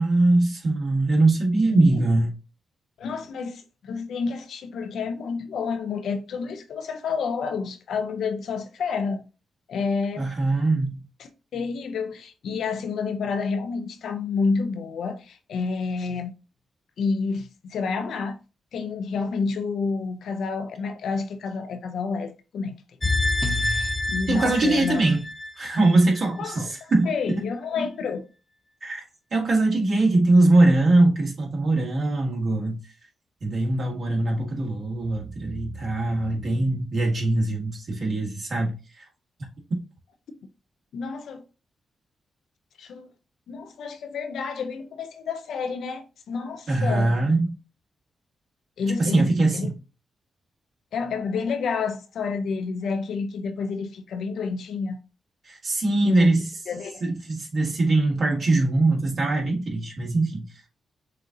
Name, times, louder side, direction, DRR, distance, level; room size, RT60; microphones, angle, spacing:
voice 1, 0.0-2.3 10.2-11.0 24.3-25.2 25.5-27.1 28.8-29.0 29.3-32.8 33.4-39.0 46.7-47.5 49.0-49.7 55.4-56.5 57.0-60.5, right 2 dB, 60° right, 1.8 m, -22 dB
voice 2, 1.7-2.0 3.0-9.2 9.7-10.3 11.2-16.3 17.0-18.4 18.7-22.8 23.6-25.0 26.4-28.2 40.9-41.4 42.8-43.1 43.5-47.2 48.8-49.7 50.9-55.0 56.0-56.3 56.7-57.0, left 5 dB, 75° left, 0.6 m, -29 dB
sound 1, 23.0-26.2 26.6-26.7, left 2 dB, 25° left, 0.9 m, -27 dB
6.6 x 2.5 x 2.7 m
hypercardioid pair, 40°, 0 cm